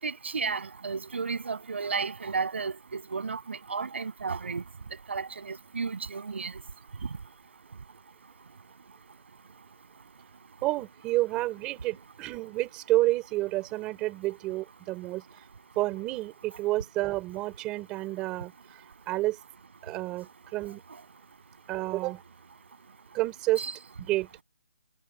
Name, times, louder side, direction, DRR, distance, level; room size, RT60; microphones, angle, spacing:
voice 1, 0.0-4.6 5.1-6.6 23.6-23.7, right 5 dB, 60° right, 7.3 m, -33 dB
voice 2, 10.6-15.2 15.8-18.5 19.1-19.4 19.8-20.8 21.7-22.2 23.1-23.6 24.0-24.3, right 18 dB, 10° right, 3.5 m, -29 dB
hypercardioid pair, 180°, 7 cm